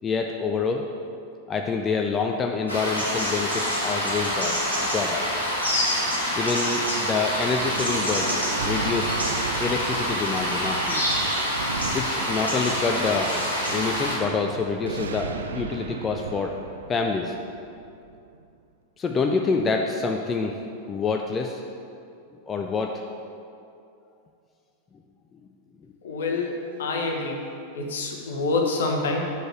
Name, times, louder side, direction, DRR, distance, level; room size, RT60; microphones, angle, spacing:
voice 1, 0.0-0.9 1.5-4.6 4.9-5.4 6.4-9.1 9.6-11.0 11.9-13.3 13.7-16.5 16.9-17.3 19.0-20.6 20.9-21.6 22.5-23.0, left 4 dB, 20° left, 3 dB, 0.4 m, -27 dB
sound 1, 2.7-14.2, equal, 85° left, 1.5 m, -26 dB
Thunder, 7.6-18.4, right 5 dB, 65° right, 0.4 m, -36 dB
voice 2, 26.0-27.4 27.7-29.3, left 3 dB, 60° left, 1 dB, 1.0 m, -27 dB
5.7 x 5.2 x 6.3 m, 2.5 s
figure-of-eight pair, 90°, 0 cm